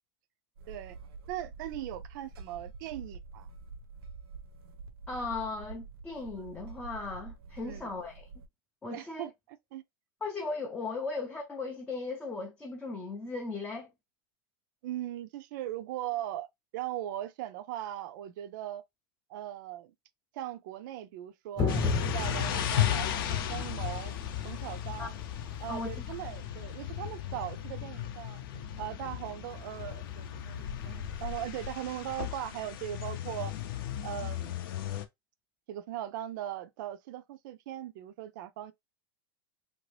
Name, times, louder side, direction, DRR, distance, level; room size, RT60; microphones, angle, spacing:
sound 1, 0.6-8.5, right 4 dB, 85° right, 0.8 m, -47 dB
voice 1, 0.7-1.0 1.3-3.5 7.6-7.9 8.9-9.8 14.8-16.5 16.7-18.8 19.3-19.9 20.3-24.1 24.4-25.2 25.6-28.4 28.8-33.5 34.0-34.5 35.7-38.7, right 12 dB, 55° right, 0.5 m, -39 dB
voice 2, 5.1-8.3 8.8-9.3 10.2-13.9 25.0-25.1 25.7-26.0, left 3 dB, 10° left, 0.4 m, -37 dB
sound 2, 21.6-32.1, left 5 dB, 25° left, 0.8 m, -37 dB
sound 3, 21.7-35.1, left 11 dB, 70° left, 0.6 m, -36 dB
2.9 x 2.7 x 3.2 m
supercardioid pair, 155°, 12 cm